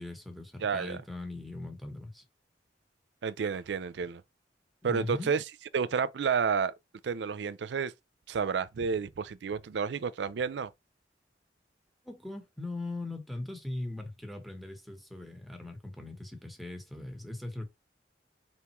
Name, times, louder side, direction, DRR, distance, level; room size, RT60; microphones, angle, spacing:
voice 1, 0.0-2.2 4.8-5.3 12.0-17.7, left 2 dB, ahead, 1.1 m, -40 dB
voice 2, 0.6-1.0 3.2-4.2 4.8-5.4 5.7-6.7 7.0-7.9 8.3-10.7, right 6 dB, 75° right, 0.4 m, -30 dB
4.3 x 3.5 x 3.0 m
head